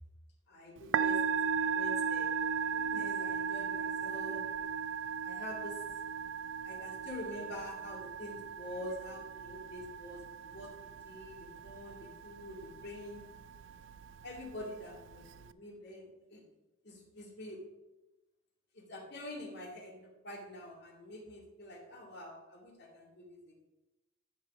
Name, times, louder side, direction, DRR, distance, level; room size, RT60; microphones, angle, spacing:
voice 1, 0.5-4.5 5.2-5.8 6.6-13.2 14.2-16.4 16.8-17.6 18.7-23.6, left 1 dB, 55° left, -1 dB, 2.5 m, -46 dB
Musical instrument, 0.8-15.5, right 6 dB, 60° right, 0.4 m, -37 dB
13.5 x 4.7 x 5.0 m, 1.0 s
head